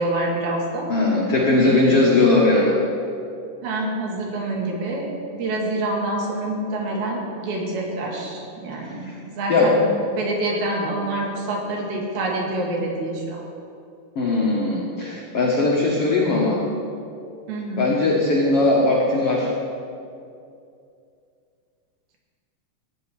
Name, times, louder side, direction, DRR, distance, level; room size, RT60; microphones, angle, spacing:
voice 1, 0.0-0.9 1.6-2.3 3.6-9.8 10.1-13.4 17.5-17.9, right 2 dB, 75° right, -1 dB, 3.4 m, -27 dB
voice 2, 0.9-2.8 8.8-8.9 9.5-9.7 14.1-16.6 17.8-19.5, left 2 dB, 75° left, -4 dB, 1.3 m, -19 dB
15.0 x 10.0 x 3.4 m, 2.5 s
omnidirectional pair, 4.6 m